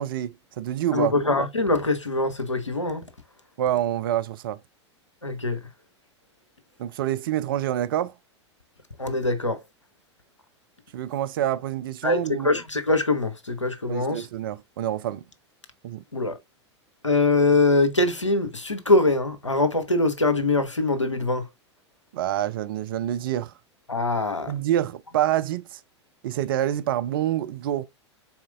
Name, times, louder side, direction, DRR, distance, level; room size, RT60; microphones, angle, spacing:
voice 1, 0.0-1.1 3.6-4.6 6.8-8.1 10.9-12.5 13.9-15.3 15.8-16.0 22.1-23.5 24.5-25.8 26.2-27.8, right 12 dB, 50° right, 0.4 m, -27 dB
voice 2, 0.9-3.0 5.2-5.6 9.0-9.6 12.0-14.3 16.1-16.4 17.0-21.5 23.9-24.5, left 2 dB, 90° left, 0.6 m, -23 dB
4.2 x 3.7 x 2.4 m
figure-of-eight pair, 95°, 15 cm